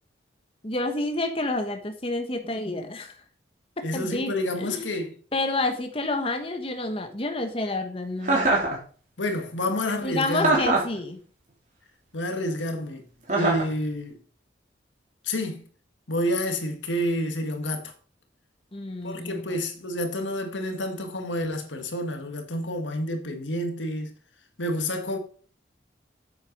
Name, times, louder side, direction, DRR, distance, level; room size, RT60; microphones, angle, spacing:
voice 1, 0.6-3.2 3.8-4.3 4.6-4.9 5.3-8.5 10.0-11.2 18.7-19.6, left 2 dB, 30° left, 1.3 m, -29 dB
voice 2, 3.8-5.2 9.2-10.6 12.1-13.0 13.3-14.2 15.2-15.6 16.1-17.9 19.0-24.1 24.6-25.2, left 1 dB, 90° left, 1.9 m, -29 dB
Chuckle chortle, 8.2-8.7 10.4-11.0 13.3-13.7, right 2 dB, 40° right, 3.2 m, -22 dB
8.4 x 8.2 x 5.3 m
head